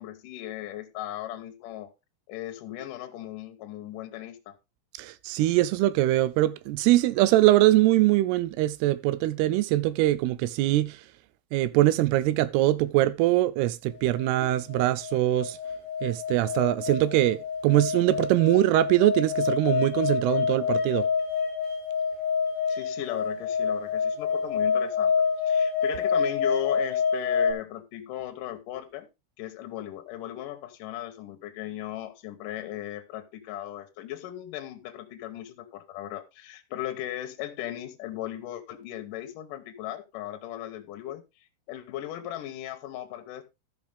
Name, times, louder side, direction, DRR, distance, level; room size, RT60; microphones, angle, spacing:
voice 1, 0.0-1.9 2.3-4.6 22.7-29.1 29.4-41.2 41.7-43.4, left 12 dB, 70° left, 2.3 m, -37 dB
voice 2, 5.0-11.0 11.5-15.6 16.0-21.1, right 15 dB, 85° right, 2.7 m, -23 dB
sound 1, 14.2-27.5, left 6 dB, 35° left, 1.4 m, -27 dB
13.5 x 6.0 x 3.5 m
omnidirectional pair, 4.6 m